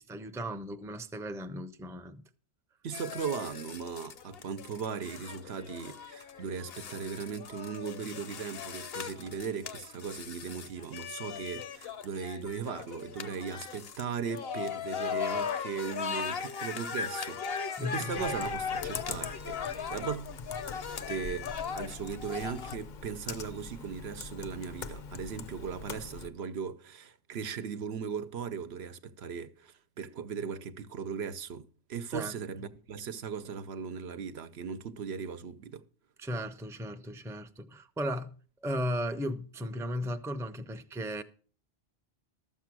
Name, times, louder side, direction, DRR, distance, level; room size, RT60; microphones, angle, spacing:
voice 1, 0.0-2.2 17.8-18.2 32.1-32.3 36.2-38.4 38.6-41.2, equal, 5° right, 0.5 m, -36 dB
voice 2, 2.8-20.3 21.0-35.8, right 6 dB, 80° right, 1.0 m, -38 dB
sound 1, 2.9-22.8, left 6 dB, 70° left, 1.1 m, -38 dB
Computer keyboard, 18.1-26.3, left 4 dB, 55° left, 0.7 m, -43 dB
12.5 x 7.4 x 6.0 m
omnidirectional pair, 1.1 m